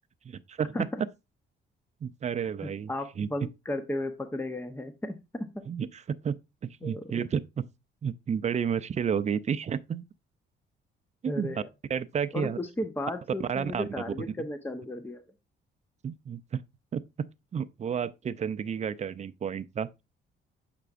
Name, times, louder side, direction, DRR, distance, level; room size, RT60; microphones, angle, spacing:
voice 1, 0.2-0.9 2.0-2.9 3.2-3.3 5.7-6.3 6.8-7.4 8.0-10.0 11.2-11.6 11.9-12.6 13.4-13.9 16.0-16.6 16.9-19.9, right 7 dB, 35° right, 0.5 m, -31 dB
voice 2, 2.6-5.5 6.8-7.1 11.3-11.7 12.3-15.2, left 1 dB, 10° left, 0.7 m, -34 dB
7.7 x 6.0 x 2.5 m
cardioid pair, 90°, 20 cm